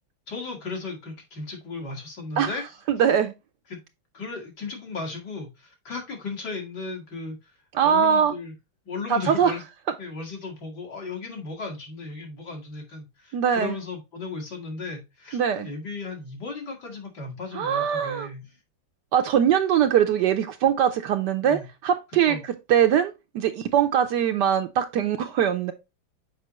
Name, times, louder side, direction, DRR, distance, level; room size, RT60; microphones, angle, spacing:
voice 1, 0.3-2.6 3.7-3.8 4.1-7.4 7.8-8.5 8.9-9.6 10.0-18.4 21.4-21.7 22.2-22.4, left 3 dB, 55° left, 2.3 m, -35 dB
voice 2, 2.9-3.3 7.7-8.3 9.1-9.5 13.3-13.8 15.3-15.7 17.5-18.3 19.1-25.7, right 8 dB, 70° right, 1.1 m, -22 dB
6.8 x 5.1 x 3.0 m
omnidirectional pair, 2.2 m